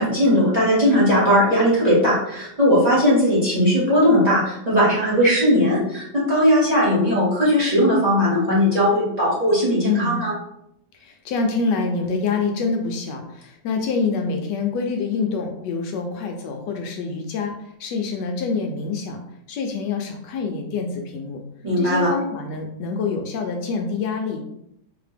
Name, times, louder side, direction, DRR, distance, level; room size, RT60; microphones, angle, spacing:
voice 1, 0.0-10.3 21.6-22.1, equal, 20° right, -8 dB, 1.6 m, -18 dB
voice 2, 9.8-10.2 11.0-17.5 17.8-19.2 19.5-21.4 21.8-24.4, left 4 dB, 75° left, 3 dB, 1.2 m, -26 dB
4.0 x 2.8 x 3.3 m, 0.77 s
omnidirectional pair, 1.9 m